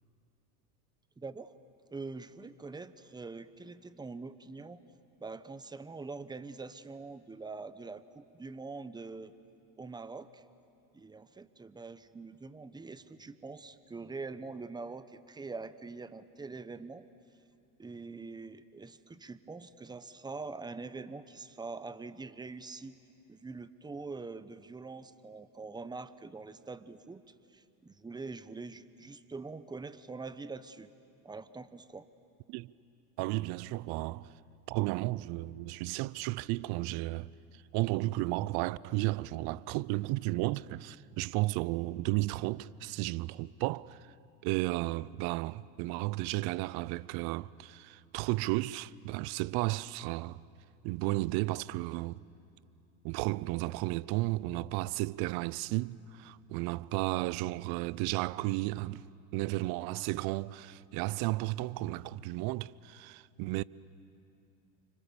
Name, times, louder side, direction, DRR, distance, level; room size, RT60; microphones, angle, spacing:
voice 1, 1.2-1.6 1.9-4.8 5.2-9.3 9.8-10.4 10.9-17.1 17.8-23.0 23.3-30.9 31.2-32.1, right 4 dB, 10° right, 0.8 m, -44 dB
voice 2, 33.2-34.3 34.7-37.3 37.7-44.0 44.4-50.4 50.8-52.2 53.0-59.0 59.3-63.6, right 20 dB, 50° right, 0.6 m, -33 dB
30.0 x 25.5 x 7.0 m
supercardioid pair, 105°, 48 cm